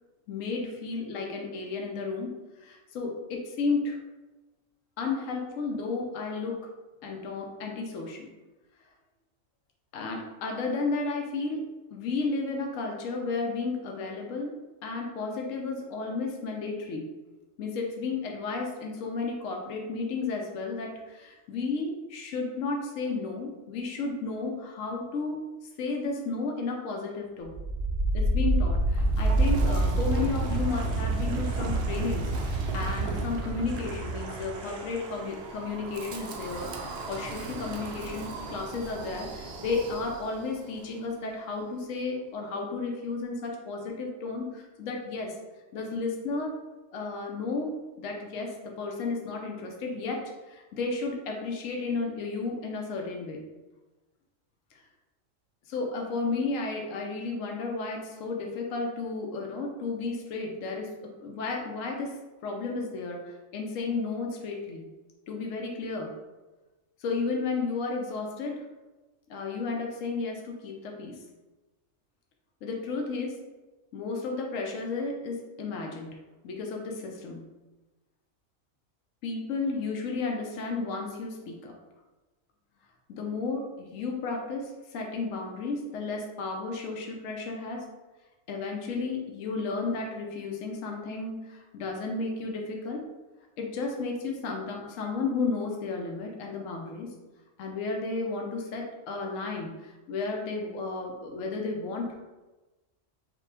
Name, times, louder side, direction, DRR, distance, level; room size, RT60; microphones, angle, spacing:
voice 1, 0.3-2.3 2.6-4.0 5.0-6.7 7.0-8.3 9.9-11.6 11.9-14.5 14.8-17.1 17.6-25.4 25.8-27.6 28.1-45.4 45.7-46.6 46.9-47.7 48.0-53.4 55.7-62.2 62.4-64.9 65.3-66.2 67.0-68.7 69.3-71.2 72.6-73.4 73.9-76.2 76.4-77.4 79.2-81.8 83.1-87.9 88.5-93.0 93.6-97.1 97.6-102.1, left 3 dB, 80° left, 1 dB, 1.1 m, -33 dB
Wind, 27.4-40.5, right 2 dB, 65° right, 0.8 m, -29 dB
5.0 x 2.4 x 3.3 m, 1.1 s
omnidirectional pair, 1.3 m